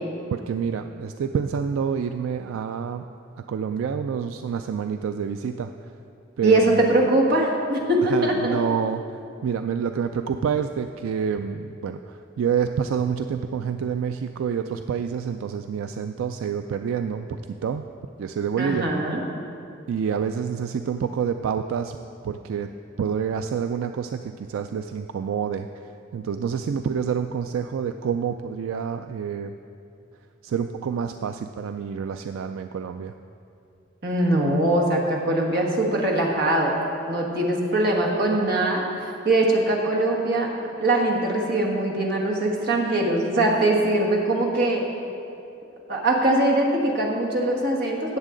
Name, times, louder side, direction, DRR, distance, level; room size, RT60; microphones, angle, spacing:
voice 1, 0.3-3.1 3.4-5.7 6.4-6.6 8.1-9.0 9.4-17.9 18.2-18.9 19.9-22.0 22.2-22.7 23.0-29.6 30.4-33.1, right 7 dB, 75° right, 7 dB, 0.3 m, -28 dB
voice 2, 6.4-8.5 18.6-19.2 34.0-36.7 37.1-40.5 40.8-44.8 45.9-48.2, right 1 dB, 50° right, -1 dB, 1.5 m, -22 dB
16.5 x 7.3 x 3.8 m, 2.6 s
head